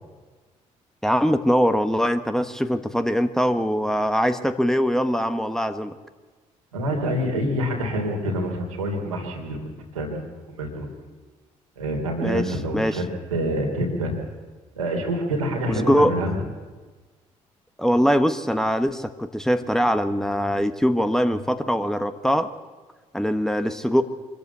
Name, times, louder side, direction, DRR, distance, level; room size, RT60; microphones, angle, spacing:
voice 1, 1.0-5.9 12.2-13.0 15.7-16.1 17.8-22.5 23.1-24.0, equal, 5° left, 9 dB, 1.4 m, -22 dB
voice 2, 6.7-9.6 9.9-10.9 11.8-13.0 13.3-14.1 14.7-16.4, right 1 dB, 85° right, 1 dB, 3.3 m, -26 dB
25.0 x 13.5 x 8.4 m, 1.3 s
figure-of-eight pair, 45°, 17 cm